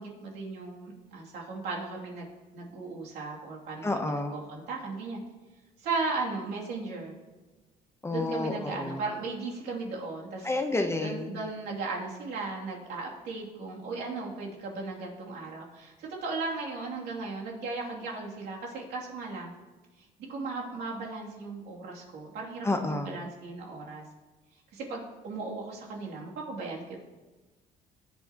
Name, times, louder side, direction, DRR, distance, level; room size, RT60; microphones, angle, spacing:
voice 1, 0.0-2.3 2.5-5.2 5.8-7.2 8.1-10.5 11.0-19.5 20.2-24.0 24.7-27.0, right 3 dB, 75° right, -3 dB, 2.9 m, -36 dB
voice 2, 3.8-4.3 8.0-9.0 10.4-11.4 22.6-23.1, left 2 dB, 15° left, 5 dB, 1.0 m, -30 dB
19.0 x 8.3 x 3.0 m, 1.2 s
cardioid pair, 110°, 17 cm